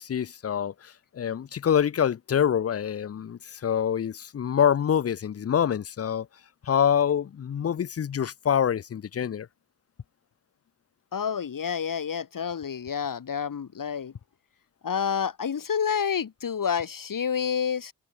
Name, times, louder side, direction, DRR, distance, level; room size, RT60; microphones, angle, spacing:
voice 1, 0.0-6.3 6.7-9.5, left 8 dB, 40° left, 0.6 m, -26 dB
voice 2, 11.1-14.1 14.8-17.9, left 7 dB, 65° left, 2.4 m, -29 dB
cardioid pair, 65°, 36 cm